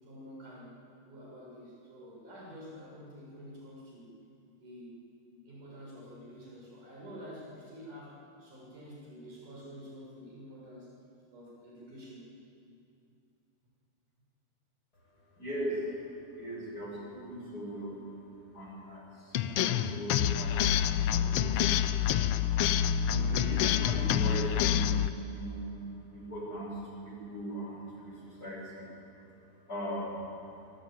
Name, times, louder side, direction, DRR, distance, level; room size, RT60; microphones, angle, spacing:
voice 1, 0.0-4.1 4.6-5.0 5.4-10.9 11.3-12.3, equal, 80° right, -3 dB, 8.8 m, -48 dB
voice 2, 15.4-16.1 16.3-18.0 18.5-22.3 23.0-25.0 25.3-25.9 26.1-28.9 29.6-30.2, right 1 dB, 30° left, -3 dB, 8.0 m, -39 dB
sound 1, 19.3-25.1, left 10 dB, 80° left, 1.3 m, -27 dB
26.0 x 22.5 x 9.3 m, 2.7 s
omnidirectional pair, 3.6 m